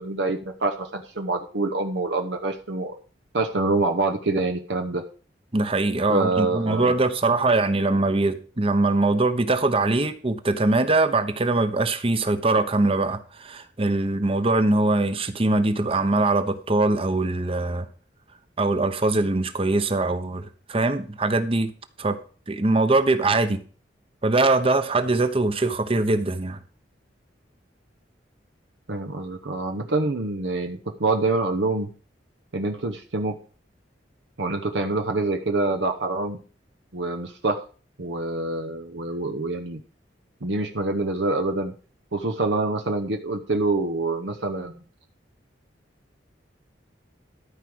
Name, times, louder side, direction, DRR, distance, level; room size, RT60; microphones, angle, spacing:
voice 1, 0.0-2.9 3.3-5.0 6.1-6.9 28.9-31.9 32.5-33.3 34.4-36.4 36.9-37.6 38.0-39.8 40.4-41.7 42.1-44.8, right 2 dB, 70° right, 5 dB, 0.9 m, -26 dB
voice 2, 5.5-17.9 18.6-21.7 22.0-22.2 22.5-23.6 24.2-26.6, right 2 dB, 30° right, 10 dB, 0.9 m, -22 dB
13.0 x 4.9 x 6.2 m, 0.40 s
head